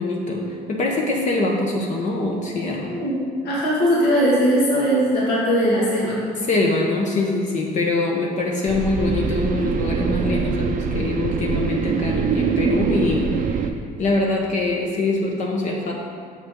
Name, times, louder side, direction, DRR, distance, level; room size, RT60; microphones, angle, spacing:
voice 1, 0.0-2.9 6.4-13.7 14.0-15.9, left 2 dB, 45° left, -1 dB, 0.9 m, -23 dB
voice 2, 3.4-6.2, equal, 75° left, -6 dB, 2.0 m, -19 dB
sound 1, 8.7-13.7, right 6 dB, 50° right, 0.6 m, -24 dB
7.0 x 4.9 x 5.3 m, 2.3 s
cardioid pair, 110°, 17 cm